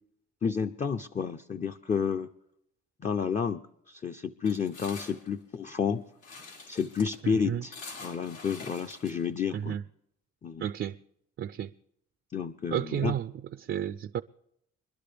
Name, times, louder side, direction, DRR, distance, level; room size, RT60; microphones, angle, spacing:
voice 1, 0.4-2.3 3.0-6.0 6.7-7.7 8.0-9.8 10.4-10.6 12.3-13.2, left 6 dB, 25° left, 0.5 m, -30 dB
sound 1, 4.5-9.8, left 4 dB, 90° left, 4.0 m, -46 dB
voice 2, 7.2-7.6 9.5-9.8 10.6-11.0 11.4-11.7 12.7-13.3 13.6-14.2, right 10 dB, 40° right, 0.4 m, -31 dB
23.0 x 11.5 x 3.4 m
cardioid pair, 90°, 30 cm